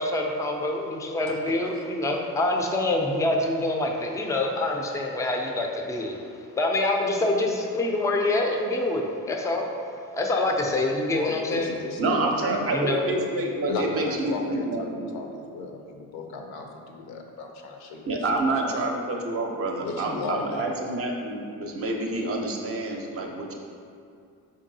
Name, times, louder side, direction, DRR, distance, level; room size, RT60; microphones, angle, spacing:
voice 1, 0.0-6.2 6.6-9.7 10.1-11.7 12.7-13.0, left 2 dB, 10° left, 1 dB, 0.4 m, -26 dB
voice 2, 11.1-12.7 13.7-18.0 18.7-18.8 19.8-20.7, left 3 dB, 70° left, 3 dB, 0.6 m, -35 dB
voice 3, 12.0-15.1 18.0-23.5, right 2 dB, 35° right, 1 dB, 0.6 m, -28 dB
4.5 x 2.6 x 2.7 m, 2.4 s
supercardioid pair, 60°, 39 cm